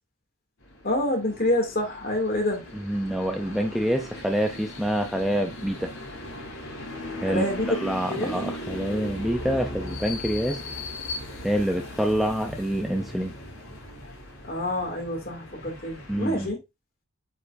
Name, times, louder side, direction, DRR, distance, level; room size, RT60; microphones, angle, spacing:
sound 1, 0.6-16.5, left 1 dB, 70° left, 3.8 m, -38 dB
voice 1, 0.8-2.6 7.3-7.7 8.1-8.3 14.4-16.6, left 1 dB, 45° left, 2.5 m, -27 dB
voice 2, 2.7-5.9 7.2-7.5 7.7-10.6 11.4-13.3 16.1-16.5, equal, ahead, 0.5 m, -26 dB
8.5 x 4.5 x 2.6 m
head